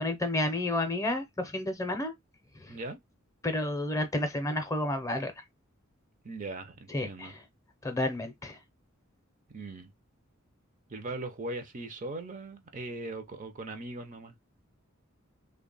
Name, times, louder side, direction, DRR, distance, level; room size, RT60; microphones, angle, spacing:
voice 1, 0.0-2.1 3.4-5.3 6.9-7.3 7.8-8.6, left 1 dB, 15° left, 0.6 m, -30 dB
voice 2, 2.7-3.0 6.2-7.4 9.5-9.9 10.9-14.3, right 2 dB, 40° right, 0.6 m, -39 dB
3.3 x 2.2 x 3.8 m
head